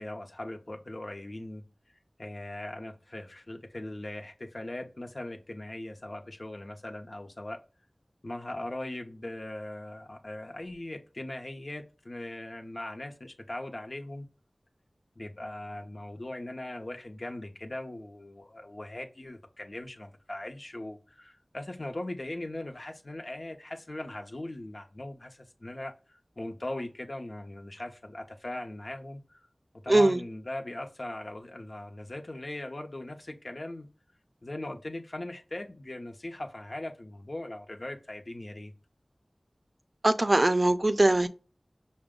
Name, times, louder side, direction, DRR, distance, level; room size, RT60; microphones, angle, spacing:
voice 1, 0.0-1.6 2.2-7.6 8.2-14.3 15.2-25.9 26.4-29.4 29.8-33.9 34.4-38.7, left 1 dB, 60° left, 0.7 m, -39 dB
voice 2, 29.9-30.2 40.0-41.3, right 2 dB, 50° right, 0.4 m, -22 dB
5.9 x 2.1 x 3.6 m
wide cardioid pair, 50°, 0 cm